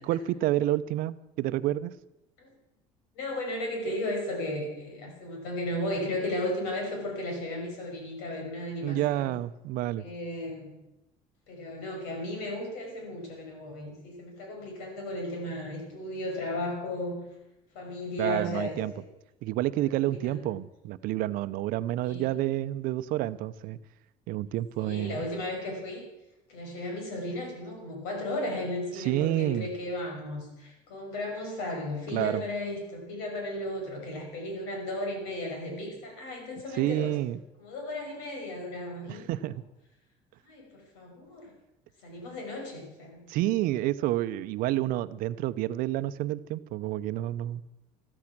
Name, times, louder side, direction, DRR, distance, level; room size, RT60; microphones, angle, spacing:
voice 1, 0.0-1.9 8.8-10.0 18.2-18.9 19.4-23.8 24.3-25.2 29.0-29.7 32.1-32.4 36.7-37.4 39.1-39.6 43.3-47.6, right 15 dB, 70° right, 14 dB, 0.7 m, -29 dB
voice 2, 3.2-9.3 10.0-10.7 11.5-17.2 17.7-18.8 19.8-20.5 22.0-22.3 24.8-26.0 26.5-37.2 37.6-39.3 40.4-41.5 42.0-43.3, left 1 dB, 90° left, 1 dB, 5.7 m, -35 dB
13.5 x 13.5 x 6.1 m, 0.95 s
cardioid pair, 110°, 15 cm